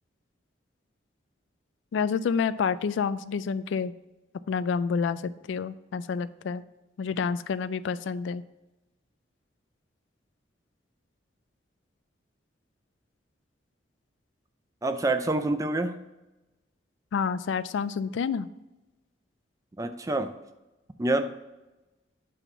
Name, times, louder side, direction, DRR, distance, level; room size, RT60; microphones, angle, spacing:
voice 1, 1.9-3.9 4.5-6.6 7.0-8.4 17.1-18.5, left 6 dB, 80° left, 14 dB, 0.3 m, -28 dB
voice 2, 14.8-16.0 19.8-20.3 21.0-21.3, right 2 dB, 15° right, 8 dB, 0.4 m, -27 dB
8.2 x 3.6 x 5.8 m, 1.0 s
head